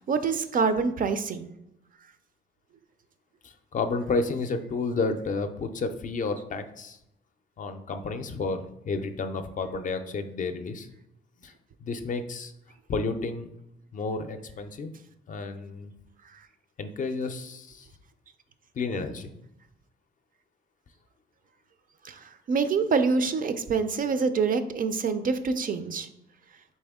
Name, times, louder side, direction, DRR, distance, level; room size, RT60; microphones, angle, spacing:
voice 1, 0.0-1.5 22.0-26.1, right 5 dB, 45° right, 10 dB, 0.4 m, -26 dB
voice 2, 3.4-7.0 7.6-10.9 11.4-11.5 11.8-12.5 12.9-13.5 13.9-14.9 15.3-15.9 16.8-17.9 18.7-19.3, left 3 dB, 40° left, 8 dB, 0.4 m, -31 dB
4.2 x 3.4 x 3.5 m, 0.82 s
cardioid pair, 90°, 20 cm